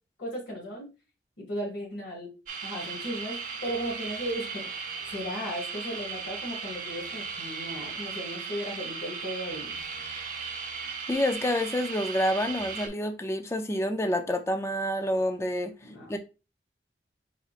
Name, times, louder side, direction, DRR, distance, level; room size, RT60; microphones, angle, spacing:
voice 1, 0.2-0.9 1.4-2.3 2.6-4.7 5.1-9.7 15.8-16.2, equal, 90° left, 2.0 m, -36 dB
sound 1, 2.5-12.9, right 5 dB, 50° right, 0.8 m, -37 dB
voice 2, 11.1-15.7 16.1-16.2, left 1 dB, 15° left, 0.4 m, -28 dB
4.9 x 4.2 x 2.4 m
head